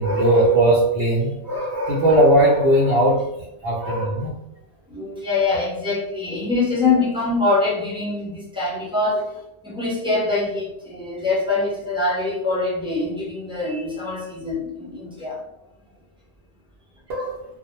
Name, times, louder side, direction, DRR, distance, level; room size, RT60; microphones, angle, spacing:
voice 1, 0.0-3.3 3.6-4.3 17.1-17.4, right 1 dB, 65° right, -6 dB, 0.8 m, -18 dB
voice 2, 4.9-9.3 9.6-15.4, left 3 dB, 5° right, -6 dB, 0.6 m, -24 dB
2.1 x 2.1 x 3.1 m, 0.87 s
omnidirectional pair, 1.2 m